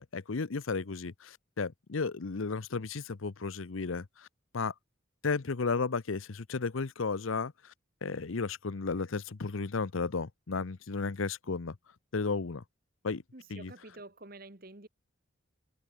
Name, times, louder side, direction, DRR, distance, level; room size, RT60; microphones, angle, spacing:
voice 1, 0.0-4.3 4.5-4.7 5.2-7.7 8.0-11.8 12.1-12.6 13.0-13.2 13.5-13.7, left 4 dB, 85° left, 0.8 m, -34 dB
voice 2, 13.3-14.9, right 2 dB, 45° right, 1.7 m, -49 dB
head